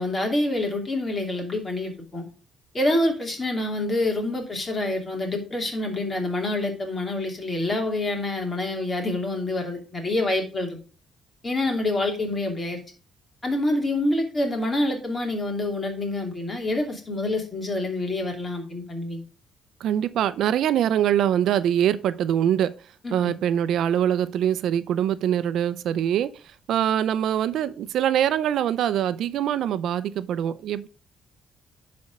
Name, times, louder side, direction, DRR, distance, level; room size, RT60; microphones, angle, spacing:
voice 1, 0.0-2.2 2.7-10.8 11.4-12.8 13.4-19.2 23.0-23.3, left 2 dB, 25° left, 2.8 m, -27 dB
voice 2, 19.8-22.7 23.1-26.3 26.7-30.9, right 10 dB, 75° right, 0.5 m, -23 dB
10.5 x 4.3 x 4.8 m
cardioid pair, 120°, 0 cm